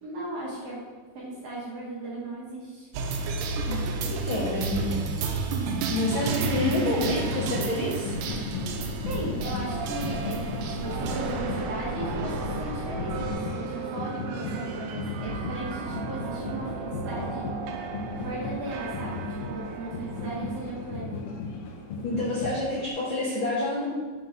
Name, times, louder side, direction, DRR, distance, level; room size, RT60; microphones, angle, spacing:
voice 1, 0.0-0.8 1.1-2.9 9.0-10.5 10.8-17.5 18.1-21.2, right 2 dB, 65° right, -6 dB, 1.7 m, -37 dB
sound 1, 2.9-20.9, right 4 dB, 80° right, 2.1 m, -33 dB
voice 2, 3.7-5.1 5.9-8.1 22.0-23.9, left 1 dB, 70° left, -6 dB, 1.1 m, -28 dB
sound 2, 5.7-22.9, left 3 dB, 85° left, 2.4 m, -36 dB
sound 3, 8.1-13.3, equal, 40° left, 1.4 m, -37 dB
6.7 x 3.6 x 3.9 m, 1.5 s
omnidirectional pair, 3.8 m